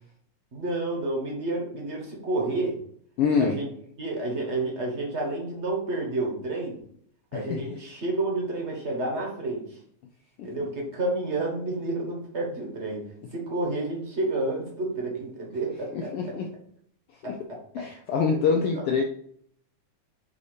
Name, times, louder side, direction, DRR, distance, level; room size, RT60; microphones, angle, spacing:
voice 1, 0.5-2.8 3.4-3.7 4.0-6.8 7.3-9.6 10.4-13.0 13.3-16.3 17.2-17.8 18.3-18.4, right 2 dB, 40° right, -1 dB, 1.0 m, -30 dB
voice 2, 3.2-3.6 7.3-7.6 15.9-16.5 17.2-17.3 17.7-19.0, left 5 dB, 85° left, 2 dB, 1.3 m, -25 dB
8.2 x 2.8 x 4.9 m, 0.63 s
omnidirectional pair, 3.4 m